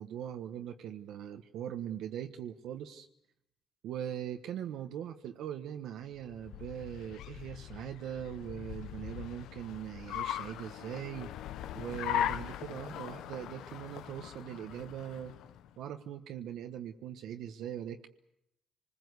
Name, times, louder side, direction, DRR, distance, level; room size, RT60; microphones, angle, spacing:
voice 1, 0.0-3.1 3.8-11.3 11.7-15.3 15.8-18.1, right 10 dB, 85° right, 5 dB, 1.3 m, -41 dB
Car, 6.2-15.7, left 11 dB, 85° left, 0.9 m, -40 dB
25.5 x 20.5 x 8.2 m, 0.78 s
cardioid pair, 90°, 0 cm